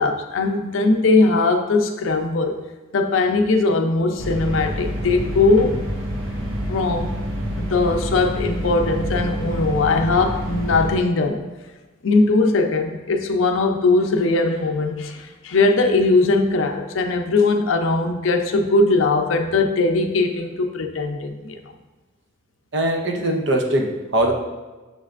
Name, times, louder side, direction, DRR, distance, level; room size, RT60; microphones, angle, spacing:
voice 1, 0.0-2.6 2.9-5.8 6.7-7.1 7.6-11.4 12.0-21.6, left 3 dB, 85° left, 5 dB, 0.5 m, -20 dB
sound 1, 4.2-10.9, equal, 85° right, 0.9 m, -27 dB
voice 2, 22.7-24.3, right 1 dB, 60° right, 2 dB, 0.6 m, -21 dB
6.6 x 3.2 x 2.5 m, 1.2 s
head